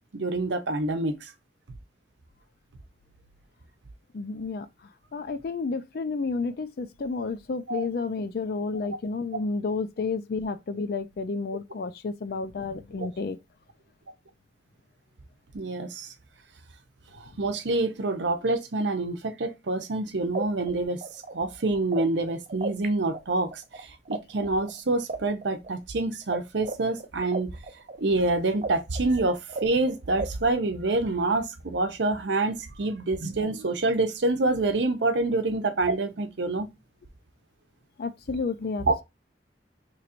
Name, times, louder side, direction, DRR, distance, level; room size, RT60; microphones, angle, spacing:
voice 1, 0.1-1.3 7.7-7.9 13.0-13.1 15.5-16.1 17.2-21.0 21.3-27.5 28.0-36.7 38.9-39.0, right 2 dB, 80° right, 0.7 m, -27 dB
voice 2, 4.1-4.7 5.1-13.4 38.0-39.0, left 4 dB, 55° left, 0.4 m, -31 dB
sound 1, 20.0-20.1 20.3-22.9 23.1-26.4 26.6-30.5, right 3 dB, 45° right, 0.5 m, -35 dB
3.1 x 2.5 x 4.2 m
head